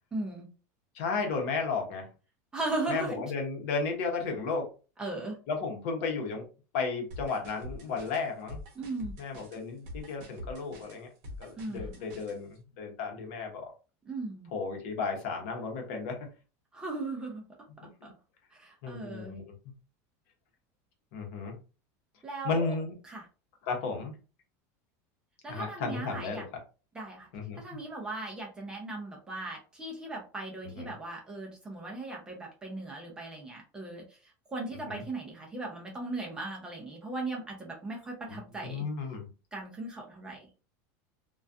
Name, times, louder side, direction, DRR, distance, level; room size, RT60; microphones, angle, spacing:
voice 1, 0.1-0.5 2.5-3.2 5.0-5.4 8.8-9.1 11.6-11.9 14.1-14.5 16.7-17.4 18.0-18.1 18.5-19.4 22.2-22.8 23.0-23.3 25.4-26.4 26.9-27.3 27.5-38.9 39.5-40.5, right 2 dB, 10° right, -1 dB, 0.4 m, -38 dB
voice 2, 0.9-2.1 2.9-4.7 5.5-6.5 6.7-8.6 9.2-11.1 11.4-13.7 14.5-16.3 17.8-18.1 18.8-19.5 21.1-21.6 22.4-22.9 23.6-24.1 25.5-26.5 27.3-27.6 30.6-30.9 34.9-35.0 38.6-39.3, left 4 dB, 55° left, 2 dB, 0.8 m, -34 dB
sound 1, 7.1-12.4, left 1 dB, 45° right, 0.8 m, -44 dB
2.3 x 2.2 x 2.5 m, 0.34 s
supercardioid pair, 175°, 9 cm